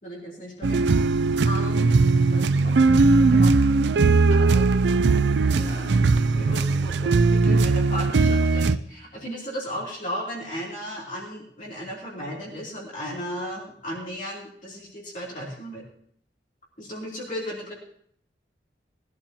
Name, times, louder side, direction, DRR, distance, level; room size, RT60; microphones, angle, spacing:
voice 1, 0.0-0.8 1.4-1.9 2.3-3.5 4.3-4.6 4.9-5.0 5.4-15.8 16.8-17.7, equal, 45° left, -4 dB, 3.1 m, -36 dB
sound 1, 0.6-8.8, right 3 dB, 80° right, 0.4 m, -19 dB
20.0 x 11.5 x 2.9 m, 0.63 s
head